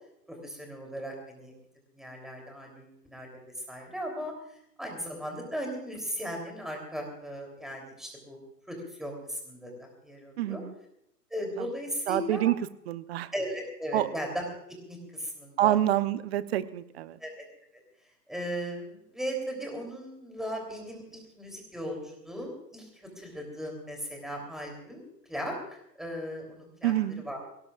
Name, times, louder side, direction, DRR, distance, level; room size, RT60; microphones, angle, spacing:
voice 1, 0.3-1.5 1.9-3.3 3.7-4.3 4.8-8.4 8.7-10.6 11.3-12.5 13.3-15.8 17.2-17.4 18.3-26.9 27.2-27.4, equal, ahead, 1 dB, 3.4 m, -37 dB
voice 2, 10.4-10.7 11.6-11.7 12.1-12.6 12.9-13.3 13.9-14.1 15.6-17.2 26.8-27.2, right 13 dB, 40° right, 14 dB, 0.8 m, -27 dB
22.0 x 18.5 x 2.5 m, 0.76 s
hypercardioid pair, 130°, 49 cm